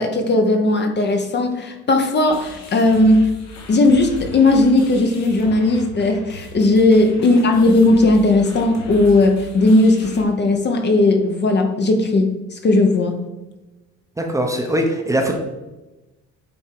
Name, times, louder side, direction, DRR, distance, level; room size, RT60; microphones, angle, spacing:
voice 1, 0.0-3.3 3.7-13.2, left 2 dB, 35° left, 5 dB, 0.9 m, -16 dB
sound 1, 2.3-10.2, left 1 dB, 70° left, 1.7 m, -38 dB
voice 2, 14.2-15.4, right 1 dB, 10° right, 2 dB, 0.8 m, -21 dB
9.2 x 3.6 x 4.6 m, 1.0 s
cardioid pair, 130°, 29 cm